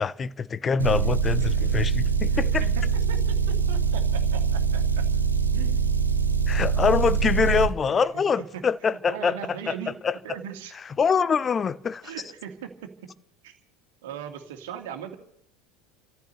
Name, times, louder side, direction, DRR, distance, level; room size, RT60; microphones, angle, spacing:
voice 1, 0.0-2.6 6.5-10.2 10.7-12.1, left 6 dB, 25° left, 0.6 m, -25 dB
Motor vehicle (road) / Engine, 0.8-7.7, right 6 dB, 85° right, 0.9 m, -23 dB
voice 2, 2.3-3.2 3.7-5.0 5.5-5.9 7.9-8.6 8.9-9.9 10.2-10.7 12.0-12.9 13.4-13.6 14.0-15.2, right 9 dB, 65° right, 2.1 m, -39 dB
29.5 x 14.0 x 3.3 m
figure-of-eight pair, 75°, 0 cm